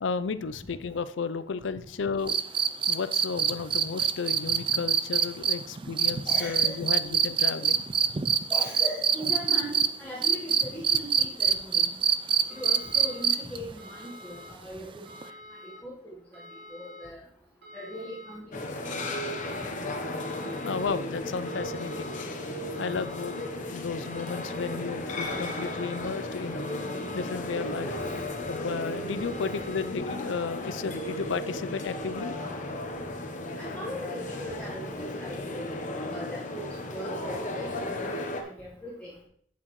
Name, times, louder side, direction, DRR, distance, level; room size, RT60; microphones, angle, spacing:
voice 1, 0.0-2.4 2.9-7.9 20.6-22.2 22.8-23.4 23.7-26.7 27.1-28.2 28.5-32.3, left 5 dB, 70° left, 14 dB, 0.5 m, -33 dB
sound 1, 2.3-9.9 10.2-13.6 15.2-15.3, right 7 dB, 25° right, 0.4 m, -24 dB
voice 2, 6.3-6.8 7.0-7.2 8.5-11.9 12.5-15.0 15.6-16.4 16.7-17.2 17.7-19.2 27.9-28.2 29.2-29.3 33.6-35.6 36.1-38.1 38.3-39.1, equal, 10° left, -7 dB, 1.4 m, -39 dB
sound 2, 12.5-13.2 13.8-14.5 15.1-15.8 16.3-17.1 17.6-18.3 18.9-19.6 20.2-20.9 21.5-22.2 22.7-23.5 24.0-24.8 25.3-26.0 26.6-27.3 27.9-28.6 29.1-29.9, left 1 dB, 55° right, 3.6 m, -47 dB
sound 3, 18.5-38.4, left 1 dB, 40° left, 0.9 m, -35 dB
8.5 x 7.6 x 3.1 m, 0.64 s
head